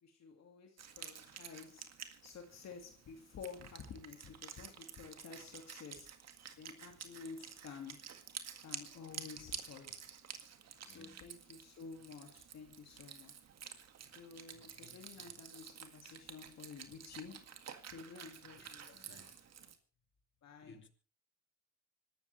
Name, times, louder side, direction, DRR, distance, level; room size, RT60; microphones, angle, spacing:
voice 1, 0.0-1.9 2.2-6.1 6.6-8.1 8.6-10.0 10.9-13.3 14.1-17.5 17.9-18.9 20.4-20.8, left 5 dB, 60° left, 2.3 m, -51 dB
Wind instrument woodwind instrument, 0.8-19.8, right 8 dB, 60° right, 1.9 m, -51 dB
voice 2, 10.6-11.5 14.5-15.3 18.5-19.4 20.6-20.9, left 3 dB, 40° left, 2.8 m, -62 dB
25.5 x 13.0 x 3.3 m
cardioid pair, 90°, 30 cm